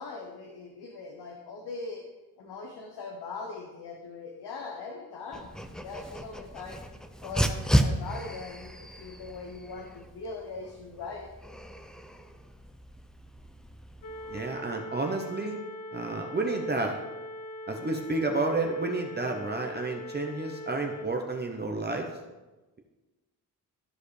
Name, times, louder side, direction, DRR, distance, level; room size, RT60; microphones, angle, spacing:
voice 1, 0.0-2.0 2.4-5.5 5.8-6.8 7.2-11.3, left 3 dB, 80° left, 2 dB, 1.0 m, -40 dB
Dog, 5.3-14.4, equal, ahead, 0.6 m, -33 dB
sound 1, 14.0-21.1, left 1 dB, 55° left, 0.9 m, -41 dB
voice 2, 14.3-15.6 15.9-17.0 17.7-22.1, right 3 dB, 25° right, 2 dB, 0.8 m, -30 dB
13.5 x 4.8 x 3.3 m, 1.1 s
cardioid pair, 75°, 39 cm